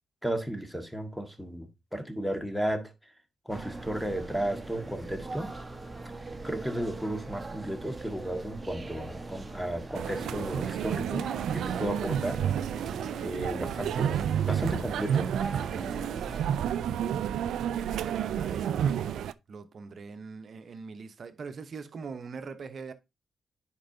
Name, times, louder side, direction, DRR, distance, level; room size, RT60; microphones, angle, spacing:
voice 1, 0.2-2.9 3.5-5.5 6.3-11.3 11.5-12.4 13.2-15.3, right 1 dB, ahead, 1.7 m, -34 dB
sound 1, 3.5-16.4, right 2 dB, 25° right, 1.2 m, -41 dB
sound 2, 10.0-19.3, right 9 dB, 85° right, 0.3 m, -30 dB
voice 2, 17.2-17.6 17.8-22.9, right 5 dB, 60° right, 0.9 m, -42 dB
10.0 x 4.5 x 2.7 m
cardioid pair, 60°, 0 cm